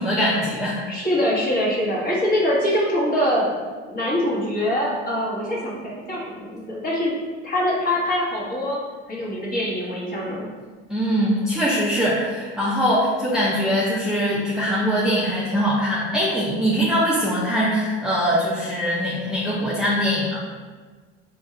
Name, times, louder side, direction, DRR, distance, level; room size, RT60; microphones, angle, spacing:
voice 1, 0.0-0.8 10.9-20.4, equal, ahead, -7 dB, 0.6 m, -22 dB
voice 2, 0.9-3.5 3.9-7.1 7.4-8.8 9.1-10.5, left 1 dB, 30° left, -6 dB, 1.4 m, -23 dB
3.5 x 2.7 x 3.2 m, 1.4 s
supercardioid pair, 85°, 29 cm